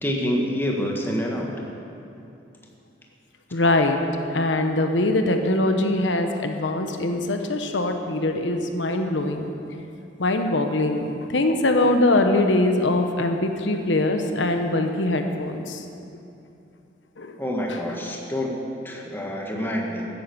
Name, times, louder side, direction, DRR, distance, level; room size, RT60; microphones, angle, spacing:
voice 1, 0.0-1.5 17.4-20.1, equal, 10° left, 0 dB, 1.7 m, -27 dB
voice 2, 3.5-4.0 4.3-9.5 10.2-15.8 17.2-17.4 17.7-17.8, left 2 dB, 85° left, 5 dB, 1.1 m, -22 dB
15.5 x 9.5 x 7.1 m, 2.7 s
head